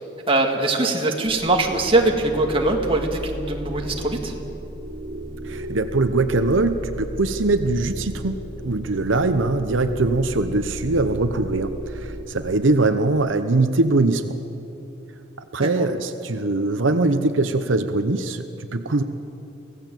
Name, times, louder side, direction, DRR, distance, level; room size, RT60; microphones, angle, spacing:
voice 1, 0.3-4.3, right 2 dB, 30° right, 1 dB, 2.1 m, -21 dB
sound 1, 1.2-12.2, right 1 dB, 55° right, 3.4 m, -34 dB
voice 2, 5.4-14.4 15.5-19.0, right 2 dB, 80° right, 8 dB, 0.9 m, -22 dB
25.0 x 17.0 x 7.7 m, 2.9 s
head